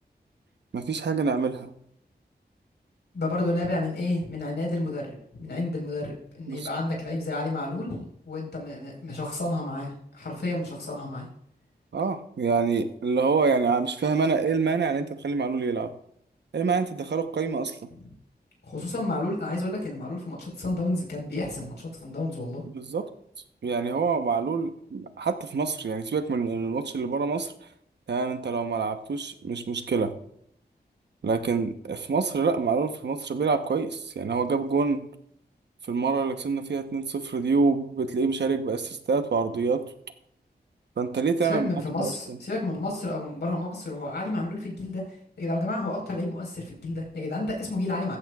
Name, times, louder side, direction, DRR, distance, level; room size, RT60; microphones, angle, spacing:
voice 1, 0.7-1.7 6.5-6.7 11.9-15.9 16.5-17.8 22.7-23.1 23.6-27.5 28.1-30.1 31.2-35.0 35.9-39.8 41.0-41.7 42.0-42.4, right 4 dB, 85° right, 8 dB, 1.0 m, -26 dB
voice 2, 3.1-11.3 18.0-18.1 18.6-22.6 41.4-48.2, left 2 dB, 80° left, -2 dB, 4.5 m, -31 dB
16.0 x 14.5 x 2.4 m, 0.72 s
wide cardioid pair, 100°, 17 cm